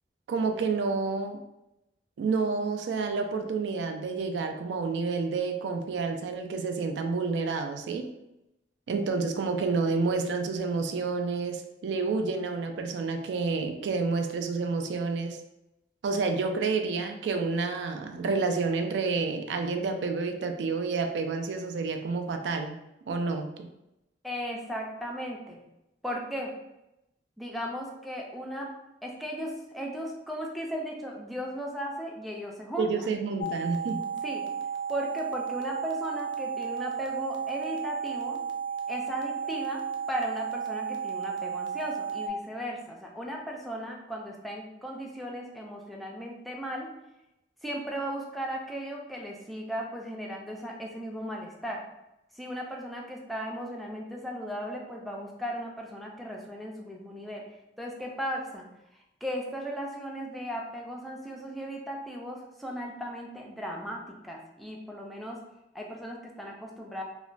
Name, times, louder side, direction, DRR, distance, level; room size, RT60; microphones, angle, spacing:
voice 1, 0.3-1.4 2.2-8.1 8.9-15.4 16.0-22.8 23.1-23.7 32.8-34.1, right 4 dB, 75° right, 6 dB, 0.3 m, -29 dB
voice 2, 24.2-25.6 26.0-26.5 27.4-28.7 29.0-32.9 34.2-34.5 34.9-38.4 38.9-46.9 47.6-51.8 52.3-58.7 58.9-65.4 65.7-67.0, equal, ahead, -1 dB, 0.3 m, -36 dB
sound 1, 33.4-42.3, right 6 dB, 75° left, 0.4 m, -33 dB
2.9 x 2.1 x 2.5 m, 0.89 s
head